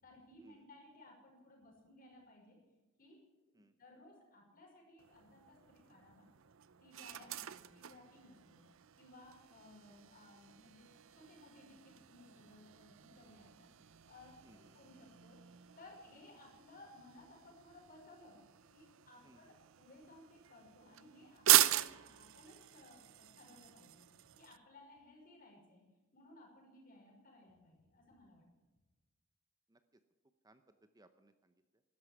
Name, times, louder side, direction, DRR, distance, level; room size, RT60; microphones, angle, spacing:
voice 1, 0.0-2.6 3.0-3.5 3.8-6.3 6.8-8.6 9.0-13.7 14.0-15.4 15.8-18.4 18.7-24.0 24.4-25.8 26.1-28.4, left 2 dB, 40° left, -1 dB, 5.7 m, -60 dB
sound 1, 5.0-24.6, right 14 dB, 65° right, 0.6 m, -40 dB
voice 2, 14.4-14.8 19.2-19.5 29.7-29.8 30.4-31.8, right 1 dB, 15° right, 9 dB, 0.6 m, -66 dB
12.5 x 11.0 x 9.9 m, 1.2 s
head